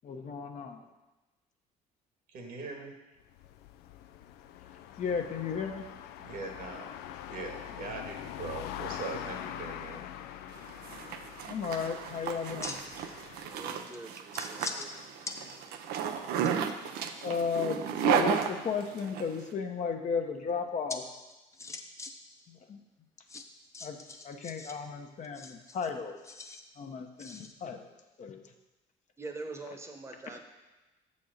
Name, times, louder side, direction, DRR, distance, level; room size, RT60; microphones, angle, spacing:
voice 1, 0.0-0.8 5.0-5.8 11.5-12.8 17.2-21.0 22.7-22.8 23.8-24.0 24.2-26.2 26.8-27.8 28.2-28.4, left 6 dB, 50° left, 4 dB, 0.9 m, -34 dB
voice 2, 2.3-2.9 6.2-6.9 7.3-10.0, right 4 dB, 65° right, 2 dB, 1.6 m, -41 dB
sound 1, 3.2-13.8, left 11 dB, 85° left, 0.4 m, -44 dB
Zipper (clothing), 10.6-19.2, right 8 dB, 80° right, 0.6 m, -33 dB
sound 2, 11.7-11.9 12.4-13.1 13.4-13.5 13.9-14.9 15.2-15.4 15.8-16.7 18.8-19.4 20.9-21.0 21.3-22.1 22.4-22.5 23.3-24.7 25.2-26.6 27.2-27.5, left 3 dB, 20° left, 0.7 m, -42 dB
voice 3, 13.5-15.0 29.2-30.4, right 2 dB, 15° right, 3 dB, 1.0 m, -44 dB
7.1 x 4.3 x 6.5 m, 1.1 s
cardioid pair, 95°, 16 cm